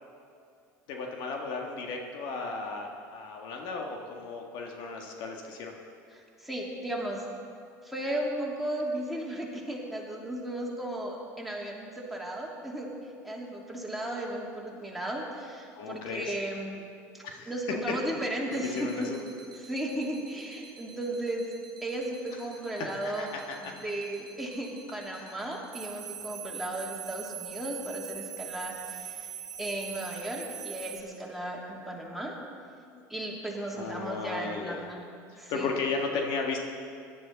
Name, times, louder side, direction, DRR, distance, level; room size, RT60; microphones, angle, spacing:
voice 1, 0.9-5.7 15.8-16.3 17.2-17.5 18.7-19.2 23.0-23.7 25.1-25.4 32.9-33.0 33.7-34.8 35.3-36.6, left 4 dB, 60° left, 2 dB, 1.6 m, -35 dB
voice 2, 6.1-7.3 7.8-12.9 13.2-16.8 17.1-19.1 19.6-21.5 21.8-23.3 23.6-32.4 33.1-35.0 35.4-35.7, right 1 dB, ahead, -3 dB, 2.8 m, -35 dB
sound 1, 18.5-31.0, right 9 dB, 45° right, 1.5 m, -43 dB
17.5 x 11.0 x 4.0 m, 2.4 s
hypercardioid pair, 75°, 9 cm